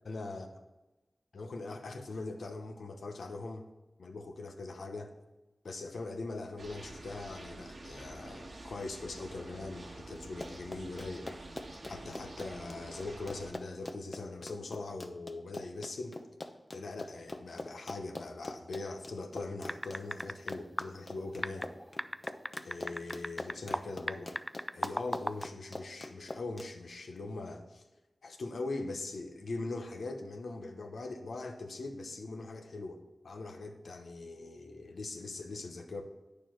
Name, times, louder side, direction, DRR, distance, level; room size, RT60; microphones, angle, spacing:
voice 1, 0.0-0.5 1.3-3.7 4.0-5.1 5.6-11.3 11.9-16.2 16.7-21.7 22.6-24.3 24.7-27.8 28.2-36.0, left 3 dB, 90° left, 5 dB, 1.0 m, -41 dB
sound 1, 6.6-13.5, right 2 dB, 70° right, 1.6 m, -48 dB
Run, 10.2-26.7, left 2 dB, 40° left, 0.8 m, -44 dB
sound 2, 19.7-20.5 20.8-20.9 21.4-23.8 24.1-25.4, equal, ahead, 0.4 m, -35 dB
9.4 x 6.8 x 4.5 m, 1.1 s
cardioid pair, 45°, 0 cm